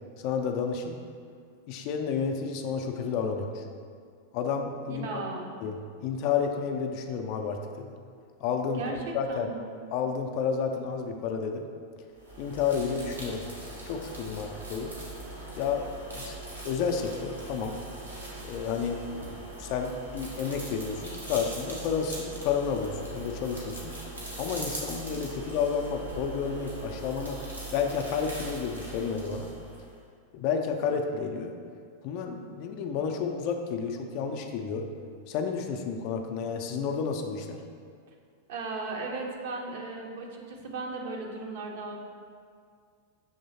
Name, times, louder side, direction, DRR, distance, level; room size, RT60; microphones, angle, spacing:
voice 1, 0.2-1.0 1.7-3.7 4.3-5.2 5.6-7.9 8.4-8.8 9.1-9.5 9.9-11.7 12.4-13.4 13.8-15.0 15.6-15.9 16.1-16.3 16.6-17.8 18.4-24.0 24.4-27.4 27.7-29.6 30.3-31.5 32.0-34.9 35.3-37.6, left 6 dB, 45° left, 4 dB, 0.4 m, -31 dB
voice 2, 4.9-5.6 8.8-9.7 38.5-42.0, right 3 dB, 55° right, 1 dB, 0.6 m, -36 dB
sound 1, 12.2-30.0, right 2 dB, 85° right, 1.0 m, -41 dB
6.5 x 3.0 x 2.7 m, 2.2 s
figure-of-eight pair, 90°, 0 cm